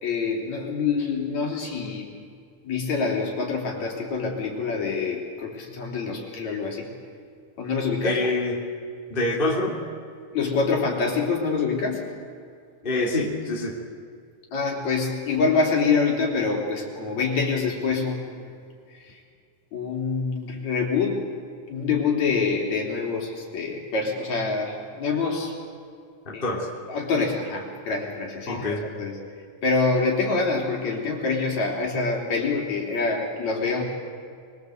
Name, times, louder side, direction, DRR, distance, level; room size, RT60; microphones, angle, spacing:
voice 1, 0.0-2.1 2.6-6.9 7.6-8.2 10.3-12.1 14.5-18.5 18.9-19.2 19.7-21.3 21.7-25.6 26.3-26.4 26.9-29.2 29.6-33.8, left 4 dB, 65° left, -1 dB, 4.6 m, -26 dB
voice 2, 8.0-8.6 9.1-9.8 12.8-13.8 26.2-26.7 28.5-28.8, left 2 dB, 15° left, -1 dB, 2.8 m, -26 dB
24.0 x 23.0 x 8.0 m, 2.3 s
omnidirectional pair, 3.5 m